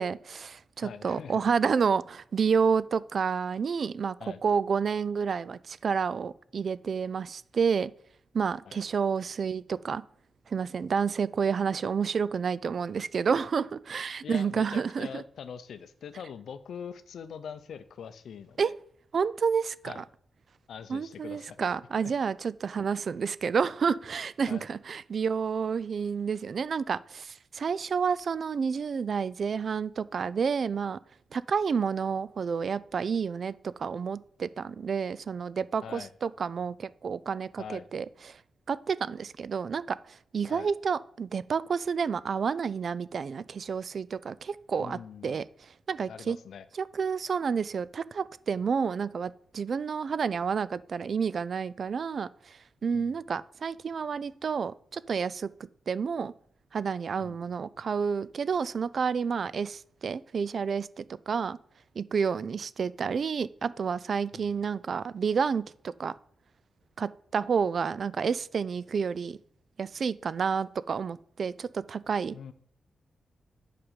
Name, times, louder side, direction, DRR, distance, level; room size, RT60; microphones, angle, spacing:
voice 1, 0.0-4.2 4.4-7.9 8.3-10.0 10.5-15.2 18.6-18.7 19.1-20.0 20.9-31.0 31.3-38.4 38.7-46.4 46.7-55.5 55.9-56.3 56.7-61.6 62.0-66.1 67.0-69.4 69.8-72.4, right 6 dB, 55° right, 18 dB, 0.3 m, -30 dB
voice 2, 0.8-1.4 4.2-4.4 8.7-8.8 14.2-18.8 19.8-20.0 20.7-21.7 22.0-22.1 24.5-24.6 35.8-36.1 37.6-37.9 40.5-40.7 44.8-45.5 46.1-46.7 52.9-53.2 57.2-57.4 64.3-64.6 72.3-72.5, left 7 dB, 80° left, 13 dB, 0.6 m, -43 dB
8.8 x 5.0 x 5.1 m, 0.63 s
wide cardioid pair, 105°, 0 cm